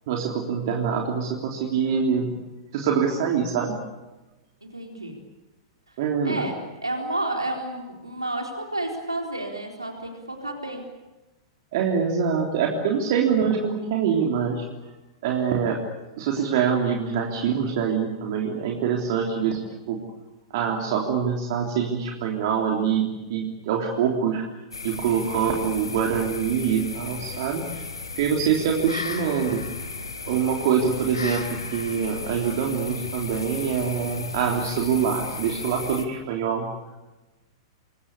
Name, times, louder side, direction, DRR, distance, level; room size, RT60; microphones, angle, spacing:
voice 1, 0.1-2.3 2.7-3.8 6.0-6.5 11.7-14.7 15.2-15.8 16.2-19.6 19.9-20.0 20.5-24.4 24.8-27.8 28.2-29.6 30.3-36.7, right 7 dB, 50° right, 1 dB, 3.5 m, -24 dB
voice 2, 4.6-5.2 5.9-10.9, right 1 dB, 90° right, 2 dB, 4.0 m, -31 dB
sound 1, 24.7-36.1, left 4 dB, 80° left, 3.5 m, -35 dB
27.0 x 22.5 x 8.4 m, 1.1 s
figure-of-eight pair, 100°, 2 cm